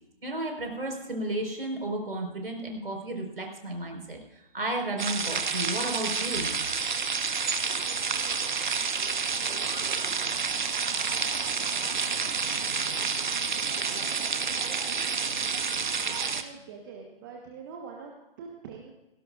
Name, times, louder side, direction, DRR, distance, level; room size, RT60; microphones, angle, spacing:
voice 1, 0.2-6.5, right 1 dB, 70° right, 2 dB, 4.6 m, -33 dB
sound 1, 5.0-16.4, right 5 dB, 50° right, 1.1 m, -29 dB
voice 2, 16.4-18.9, right 5 dB, 20° right, 1 dB, 1.2 m, -44 dB
17.5 x 17.0 x 2.5 m, 0.95 s
figure-of-eight pair, 135°, 29 cm